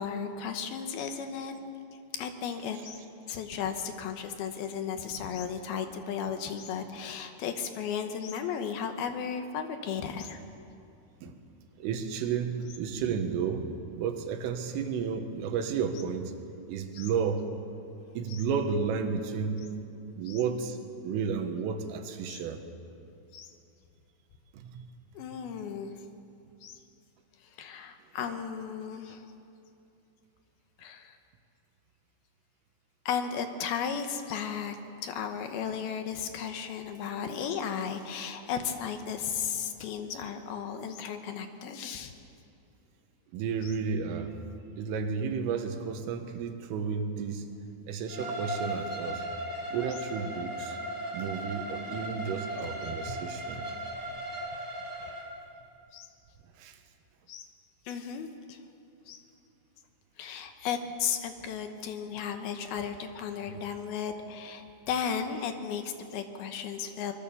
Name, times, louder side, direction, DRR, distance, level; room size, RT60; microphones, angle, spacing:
voice 1, 0.0-1.6 2.1-3.0 3.3-10.4 16.9-17.1 18.3-18.4 20.2-20.4 22.3-22.4 23.3-23.5 25.1-25.9 26.6-26.7 27.4-29.2 30.8-31.2 33.1-34.8 35.0-42.1 43.6-43.7 55.9-56.1 57.3-57.5 57.9-58.6 59.1-59.2 60.2-67.1, left 7 dB, 70° left, 7 dB, 2.5 m, -35 dB
voice 2, 11.8-16.3 16.7-17.5 18.2-19.6 20.2-20.8 21.0-22.6 24.5-24.9 28.3-28.4 43.3-44.4 44.8-47.5 47.9-49.2 49.7-50.8 51.1-53.7 56.6-56.8, right 6 dB, 85° right, 6 dB, 4.1 m, -32 dB
Bowed string instrument, 48.1-55.3, right 1 dB, 15° right, 3.3 m, -37 dB
25.0 x 22.0 x 7.1 m, 2.6 s
omnidirectional pair, 5.7 m